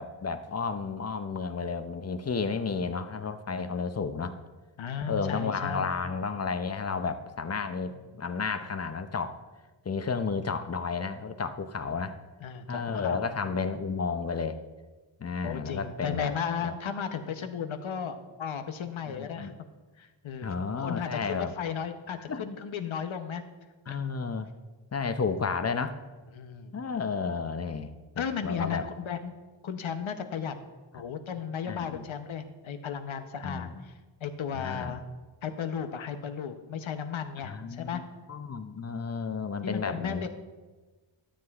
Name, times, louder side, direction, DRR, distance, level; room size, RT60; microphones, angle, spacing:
voice 1, 0.0-4.4 5.1-9.4 9.9-12.2 12.7-14.6 15.2-16.3 16.6-16.7 19.1-19.5 20.4-21.5 22.3-22.4 23.9-24.5 24.9-25.9 26.7-27.9 28.2-28.8 31.7-32.1 33.4-33.7 34.5-34.9 37.4-38.0 38.3-40.3, left 5 dB, 35° left, 10 dB, 0.5 m, -32 dB
voice 2, 4.8-5.9 7.6-8.0 12.4-13.3 15.4-19.6 20.0-20.5 20.8-23.4 23.9-24.0 26.3-26.8 28.2-29.3 29.6-30.6 30.9-33.9 34.2-35.0 35.4-38.0 39.6-40.3, left 7 dB, 75° left, 8 dB, 0.8 m, -35 dB
12.5 x 7.7 x 2.4 m, 1.3 s
wide cardioid pair, 105°, 47 cm